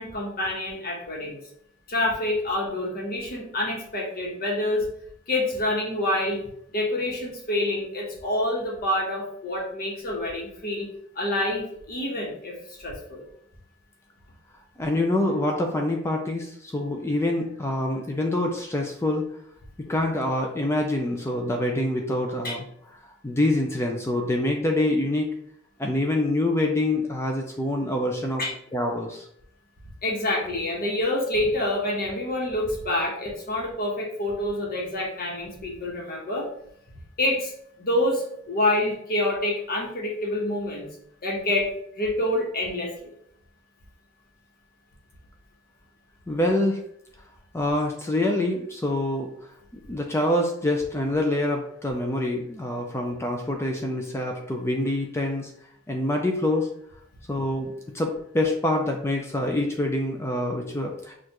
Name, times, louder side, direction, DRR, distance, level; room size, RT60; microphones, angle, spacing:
voice 1, 0.0-1.4 1.9-4.8 5.3-6.4 6.7-10.9 11.1-13.2 22.4-22.6 28.4-28.5 30.0-36.5 37.2-37.5 37.8-40.9 41.2-43.1, left 1 dB, 45° left, -2 dB, 1.1 m, -27 dB
voice 2, 14.8-19.2 19.8-22.6 23.2-25.3 25.8-28.4 28.7-29.3 46.3-46.8 47.5-55.5 55.9-56.7 57.3-61.1, left 1 dB, 10° left, 2 dB, 0.4 m, -26 dB
6.4 x 2.5 x 2.9 m, 0.70 s
head